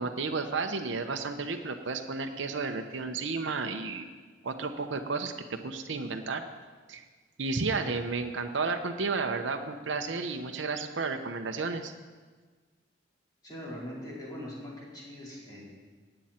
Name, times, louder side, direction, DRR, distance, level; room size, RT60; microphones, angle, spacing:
voice 1, 0.0-4.1 4.4-6.4 6.9-7.0 7.4-11.9, right 4 dB, 90° right, 5 dB, 0.8 m, -32 dB
voice 2, 13.4-15.6, equal, 25° left, -6 dB, 4.3 m, -41 dB
18.0 x 8.9 x 4.4 m, 1.4 s
head